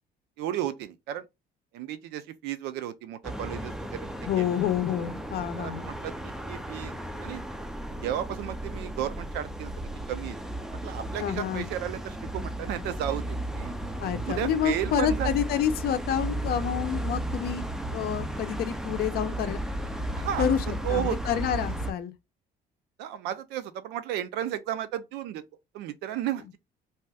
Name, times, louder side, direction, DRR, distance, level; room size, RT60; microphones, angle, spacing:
voice 1, 0.4-1.2 1.7-4.0 4.4-4.6 5.6-6.9 7.2-7.4 8.0-10.4 10.8-13.7 14.2-15.3 20.2-20.5 20.8-21.2 23.0-25.4 25.7-26.6, right 11 dB, 90° right, 0.5 m, -33 dB
sound 1, 3.2-21.9, right 1 dB, 5° right, 0.3 m, -34 dB
voice 2, 4.3-5.9 11.2-11.7 14.0-19.6 20.4-22.1, left 9 dB, 65° left, 0.5 m, -28 dB
2.8 x 2.3 x 3.3 m
cardioid pair, 110°, 17 cm